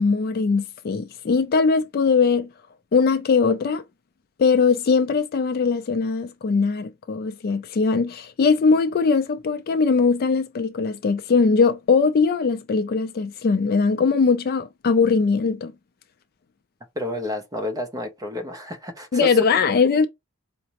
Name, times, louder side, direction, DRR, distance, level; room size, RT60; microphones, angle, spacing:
voice 1, 0.0-2.5 2.9-3.8 4.4-15.7 19.1-20.1, left 5 dB, 45° left, 0.3 m, -20 dB
voice 2, 17.0-19.3, left 1 dB, 15° right, 0.6 m, -30 dB
4.9 x 2.0 x 2.8 m
head